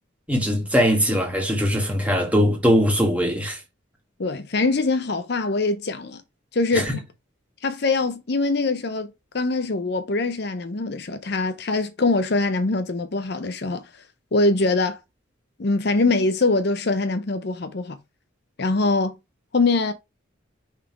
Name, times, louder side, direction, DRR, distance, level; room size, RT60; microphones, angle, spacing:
voice 1, 0.3-3.6 6.7-7.0, equal, 5° right, 1.9 m, -21 dB
voice 2, 4.2-6.2 6.5-7.0 7.6-13.8 14.3-15.0 15.6-18.0 18.6-19.2 19.5-19.9, left 3 dB, 55° left, 0.6 m, -23 dB
5.7 x 3.5 x 4.6 m
head